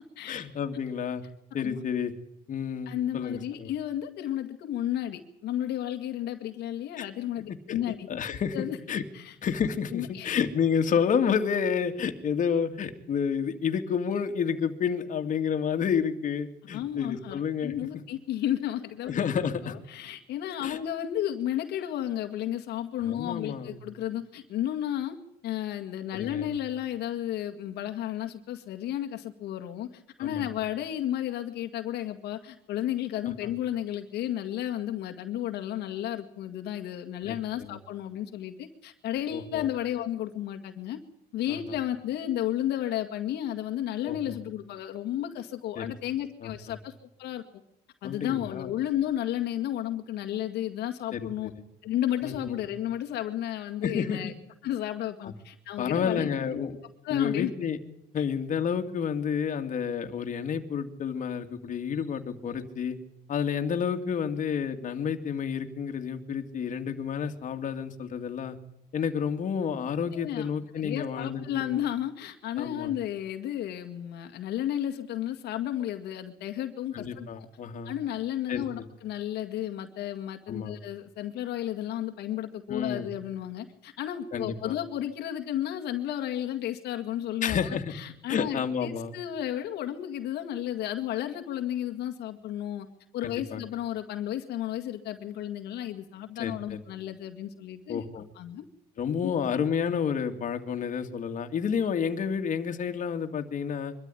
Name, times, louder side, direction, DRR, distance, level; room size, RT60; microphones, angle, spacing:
voice 1, 0.3-1.2 1.5-2.1 2.5-3.7 7.0-7.1 7.7-9.0 9.4-17.7 19.1-19.7 20.6-20.8 23.1-23.8 26.1-26.5 30.2-30.5 37.3-37.4 37.7-37.8 39.3-39.7 41.5-41.6 44.0-44.4 45.8-45.9 46.4-46.5 48.0-48.7 51.1-51.3 52.2-52.6 53.8-54.3 55.2-55.3 55.8-56.7 57.1-57.8 58.1-63.0 63.3-68.6 68.9-71.7 72.6-72.9 76.9-77.9 78.5-78.8 80.5-80.8 82.7-83.1 84.3-84.7 87.4-87.9 88.3-89.1 93.2-93.6 96.4-96.8 97.9-98.3 99.0-103.9, left 7 dB, 50° left, 5 dB, 2.4 m, -30 dB
voice 2, 2.9-8.1 8.5-8.8 9.1-9.4 9.9-10.3 16.7-19.1 19.6-25.2 25.4-41.0 41.3-46.9 47.2-47.4 48.0-51.5 51.8-54.3 54.6-56.7 57.0-57.5 58.2-58.3 70.1-70.5 70.8-77.5 77.8-92.9 93.1-98.1 98.4-98.6 99.2-99.3, left 11 dB, 80° left, 4 dB, 2.0 m, -33 dB
23.5 x 13.5 x 10.0 m, 0.80 s
cardioid pair, 110°, 17 cm